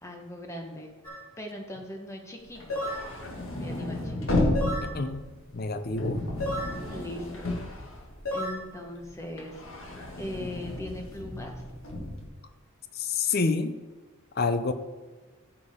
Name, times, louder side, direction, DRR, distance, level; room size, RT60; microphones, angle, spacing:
voice 1, 0.0-0.9 1.4-2.8 3.6-4.4 6.9-7.8 8.3-11.6, left 1 dB, 15° left, 2 dB, 1.1 m, -40 dB
sound 1, 1.0-1.2 2.7-3.1 4.5-4.9 6.4-6.8 8.3-8.6, left 1 dB, 85° left, 3.1 m, -31 dB
sound 2, 2.5-8.6 8.9-12.3, left 1 dB, 60° left, 1.7 m, -32 dB
voice 2, 4.8-6.2 12.9-13.8 14.3-14.7, left 4 dB, 45° left, 10 dB, 0.6 m, -28 dB
13.5 x 6.9 x 3.6 m, 1.3 s
head